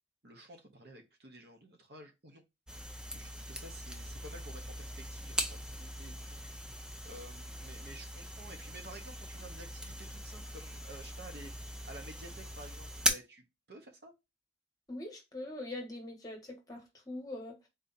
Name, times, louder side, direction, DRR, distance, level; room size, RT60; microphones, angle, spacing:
voice 1, 0.2-2.4 3.1-11.5 11.8-14.1, right 1 dB, 60° right, 0.9 m, -52 dB
sound 1, 2.7-13.1, equal, 5° right, 0.4 m, -40 dB
voice 2, 14.9-17.7, left 1 dB, 20° left, 1.2 m, -43 dB
3.9 x 2.7 x 4.0 m
head